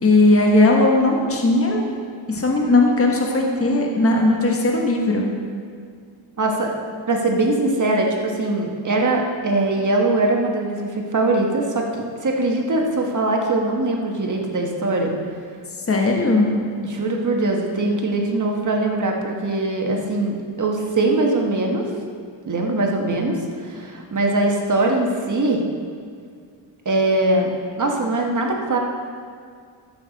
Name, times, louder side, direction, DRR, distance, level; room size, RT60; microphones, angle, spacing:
voice 1, 0.0-1.8 2.3-5.3 15.9-16.6, left 2 dB, 30° left, 0 dB, 1.4 m, -17 dB
voice 2, 6.4-6.7 7.1-15.1 16.8-21.9 22.5-25.6 26.8-27.5 27.8-28.8, right 2 dB, 40° right, 1 dB, 1.5 m, -21 dB
13.0 x 6.9 x 4.1 m, 2.1 s
cardioid pair, 90°, 47 cm